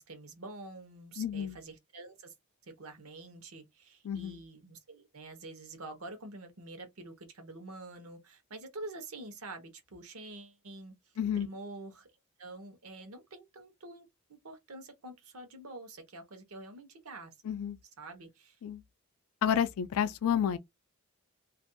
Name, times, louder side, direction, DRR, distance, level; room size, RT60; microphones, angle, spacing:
voice 1, 0.0-2.3 2.6-11.0 11.3-12.1 12.4-17.4 18.0-18.6, right 2 dB, 70° right, 0.9 m, -47 dB
voice 2, 1.2-1.6 4.0-4.4 11.2-11.5 17.5-17.8 18.6-18.8 19.4-20.6, left 8 dB, 70° left, 0.3 m, -30 dB
2.5 x 2.1 x 2.6 m
head